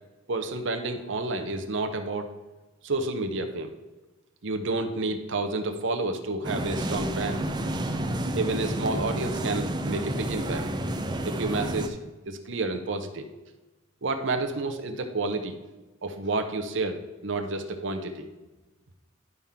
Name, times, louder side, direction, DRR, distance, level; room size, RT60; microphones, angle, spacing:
voice 1, 0.3-2.3 2.8-3.7 4.4-7.4 8.3-10.6 11.2-12.0 12.2-13.3 14.0-15.6 16.0-18.3, right 2 dB, 60° right, 6 dB, 0.7 m, -30 dB
sound 1, 6.4-11.9, right 1 dB, 20° right, 0.5 m, -30 dB
11.0 x 3.7 x 5.6 m, 1.2 s
head